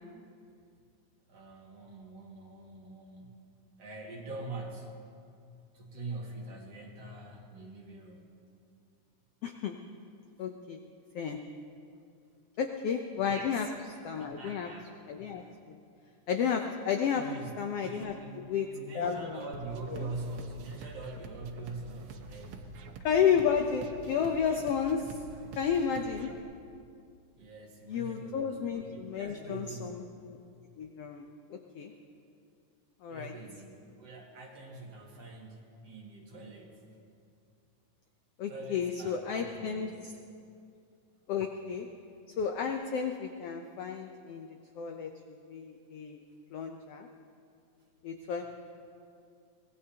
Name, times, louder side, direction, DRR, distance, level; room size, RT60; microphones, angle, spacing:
voice 1, 1.3-3.5 3.8-4.9 5.7-8.3 10.4-10.5 13.3-13.7 14.2-14.9 15.4-15.6 17.1-17.5 17.8-22.8 26.2-26.4 27.3-30.0 33.1-36.8 38.5-40.1 48.4-48.5, right 2 dB, 55° right, -2 dB, 3.0 m, -44 dB
voice 2, 9.4-9.8 10.4-10.8 11.1-11.4 12.6-13.7 14.0-14.7 15.1-15.8 16.3-17.2 17.6-18.7 18.9-19.4 20.0-20.1 23.0-25.1 25.6-26.3 27.9-29.9 30.2-30.4 30.8-31.9 33.0-33.3 38.4-39.9 41.3-41.9 42.4-44.5 44.8-46.2 46.5-47.1 48.0-48.4, left 7 dB, 75° left, 4 dB, 1.4 m, -32 dB
sound 1, 19.5-26.4, right 4 dB, 85° right, 1.1 m, -47 dB
24.0 x 18.5 x 2.9 m, 2.4 s
omnidirectional pair, 3.6 m